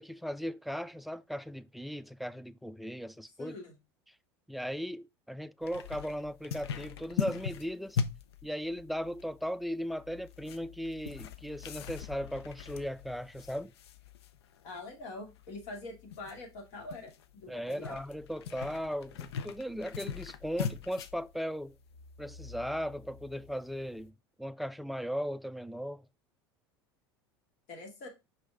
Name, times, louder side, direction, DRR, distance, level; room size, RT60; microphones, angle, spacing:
voice 1, 0.0-3.6 4.5-8.0 8.4-13.7 17.5-21.7 22.2-26.1, equal, ahead, 0.3 m, -37 dB
voice 2, 3.4-3.7 14.6-18.0 27.7-28.1, left 2 dB, 60° left, 2.4 m, -44 dB
sound 1, 5.6-24.1, left 7 dB, 80° left, 0.6 m, -41 dB
5.5 x 5.1 x 3.6 m
hypercardioid pair, 85°, 13 cm